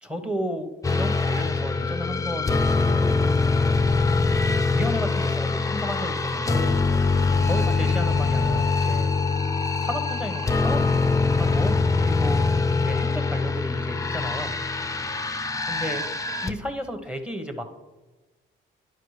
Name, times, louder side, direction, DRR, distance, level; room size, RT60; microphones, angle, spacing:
voice 1, 0.0-3.1 4.5-6.8 7.4-9.1 9.8-10.8 11.3-12.4 12.8-14.5 15.7-16.0 16.4-17.6, equal, 5° right, 6 dB, 1.1 m, -33 dB
sound 1, 0.8-16.5, left 4 dB, 15° left, 0.5 m, -23 dB
11.0 x 4.8 x 3.2 m, 1.2 s
cardioid pair, 90°, 20 cm